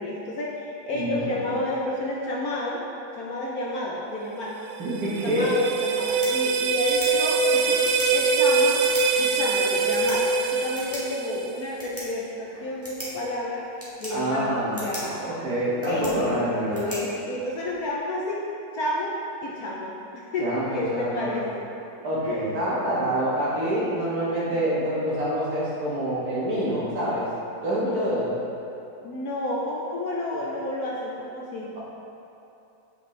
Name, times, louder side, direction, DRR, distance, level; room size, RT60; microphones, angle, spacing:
voice 1, 0.0-2.8 3.1-4.5 5.2-8.8 9.2-13.6 14.0-14.5 14.7-15.2 15.8-18.4 18.7-19.2 19.4-21.7 22.2-22.5 29.0-31.7, left 1 dB, 65° left, -4 dB, 1.1 m, -30 dB
voice 2, 0.9-1.4 4.8-5.4 14.1-16.9 20.4-21.4 22.0-27.3 27.6-28.3, equal, 55° right, -8 dB, 1.8 m, -26 dB
sound 1, 4.7-11.8, right 4 dB, 80° right, 1.3 m, -23 dB
sound 2, 5.9-17.9, equal, 10° right, 1.3 m, -42 dB
8.2 x 5.3 x 3.2 m, 2.8 s
omnidirectional pair, 2.0 m